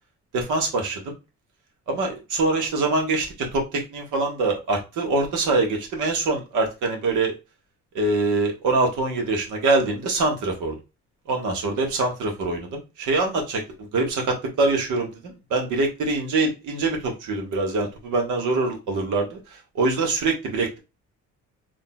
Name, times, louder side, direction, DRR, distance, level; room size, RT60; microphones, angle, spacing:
voice 1, 0.3-1.1 1.9-7.3 7.9-10.8 11.3-19.4 19.7-20.8, right 3 dB, 80° right, 2 dB, 1.3 m, -24 dB
3.8 x 2.8 x 2.3 m, 0.27 s
cardioid pair, 90°, 30 cm